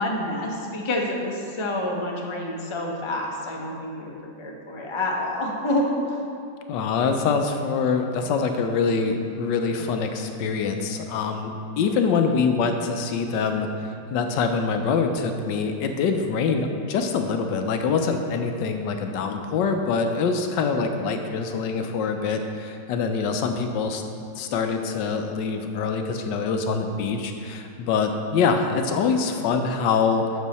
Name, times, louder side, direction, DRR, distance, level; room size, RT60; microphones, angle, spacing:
voice 1, 0.0-6.2, left 1 dB, 35° left, -1 dB, 0.4 m, -28 dB
voice 2, 6.7-11.5 11.8-24.0 24.4-30.2, left 5 dB, 75° left, 5 dB, 1.2 m, -24 dB
8.1 x 6.2 x 4.1 m, 2.4 s
omnidirectional pair, 2.1 m